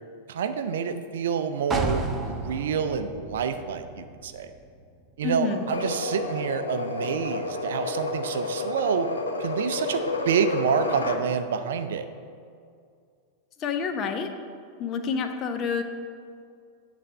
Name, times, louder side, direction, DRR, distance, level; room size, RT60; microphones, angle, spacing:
voice 1, 0.3-4.5 5.2-9.1 9.4-12.1, right 7 dB, 60° right, 9 dB, 0.4 m, -28 dB
sound 1, 1.7-5.5 5.8-5.9, right 3 dB, 20° right, 0.7 m, -33 dB
voice 2, 5.2-5.7 13.6-14.3 14.8-15.8, left 5 dB, 35° left, 6 dB, 0.7 m, -28 dB
sound 2, 5.5-11.2, left 3 dB, 75° left, 0.6 m, -30 dB
8.7 x 3.2 x 6.5 m, 2.3 s
figure-of-eight pair, 90°, 0 cm